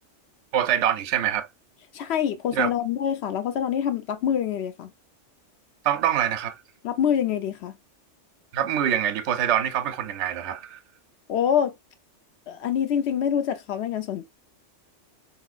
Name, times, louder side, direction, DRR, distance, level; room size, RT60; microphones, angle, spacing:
voice 1, 0.5-1.5 2.5-2.7 5.8-6.6 8.5-10.8, right 10 dB, 70° right, 0.9 m, -24 dB
voice 2, 1.9-4.9 6.8-7.8 11.3-11.7 12.5-14.3, left 9 dB, 65° left, 0.8 m, -25 dB
3.5 x 3.0 x 2.3 m
omnidirectional pair, 1.3 m